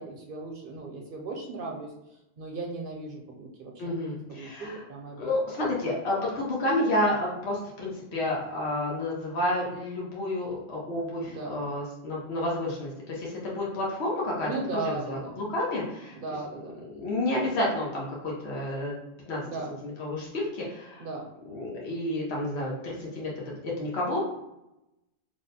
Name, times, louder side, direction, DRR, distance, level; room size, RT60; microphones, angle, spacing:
voice 1, 0.0-1.9 2.4-3.7 4.3-5.4 11.2-11.6 14.4-15.4 16.1-16.7 19.4-19.8 21.0-21.3, right 3 dB, 60° right, 0 dB, 0.8 m, -36 dB
voice 2, 3.8-4.8 5.2-16.2 16.8-19.0 19.3-19.4 19.8-21.1 21.5-23.3 23.6-24.2, left 1 dB, 85° left, -4 dB, 1.2 m, -30 dB
3.3 x 2.1 x 4.0 m, 0.89 s
omnidirectional pair, 1.1 m